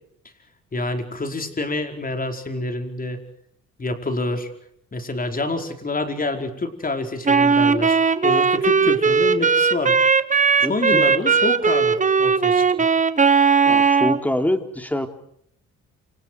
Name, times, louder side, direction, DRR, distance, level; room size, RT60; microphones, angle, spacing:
voice 1, 0.7-3.2 3.8-4.5 4.9-10.0 10.7-12.7, left 2 dB, 30° left, 6 dB, 4.9 m, -27 dB
Wind instrument woodwind instrument, 7.2-14.2, right 5 dB, 25° right, 1.4 m, -18 dB
voice 2, 10.6-11.0 13.7-15.1, left 1 dB, 5° left, 6 dB, 3.6 m, -25 dB
28.5 x 27.0 x 4.8 m, 0.70 s
cardioid pair, 90°, 30 cm